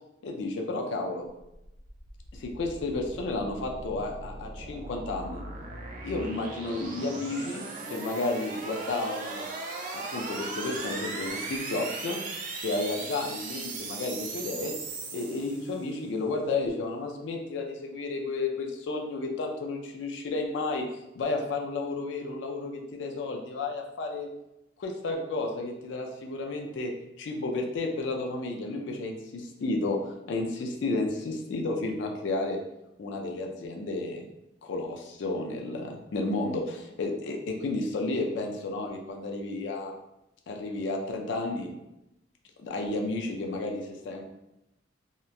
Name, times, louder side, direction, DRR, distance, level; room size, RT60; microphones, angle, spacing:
voice 1, 0.2-1.3 2.3-5.4 6.0-9.5 9.9-14.7 15.1-20.8 21.1-24.3 24.8-26.9 27.2-32.6 33.0-34.3 34.6-39.9 40.5-41.7 42.6-44.2, left 2 dB, 70° left, 2 dB, 0.3 m, -32 dB
sound 1, 1.5-16.0, right 3 dB, 45° right, 0.3 m, -38 dB
2.9 x 2.2 x 2.3 m, 0.88 s
head